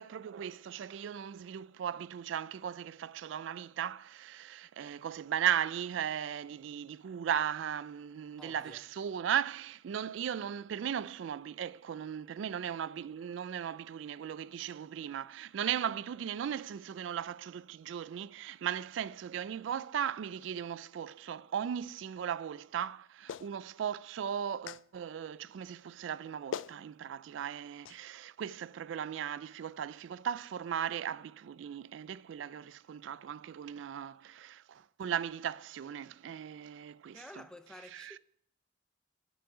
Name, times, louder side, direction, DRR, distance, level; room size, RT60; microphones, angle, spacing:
voice 1, 0.0-37.4 37.9-38.2, right 9 dB, 80° right, 0.3 m, -37 dB
voice 2, 8.4-8.8 37.1-38.2, left 1 dB, 5° left, 0.6 m, -51 dB
Clapping, 23.3-23.5 24.7-24.8 26.1-26.2 26.5-26.8 27.8-28.0, left 7 dB, 85° left, 0.3 m, -40 dB
9.3 x 9.1 x 4.8 m
head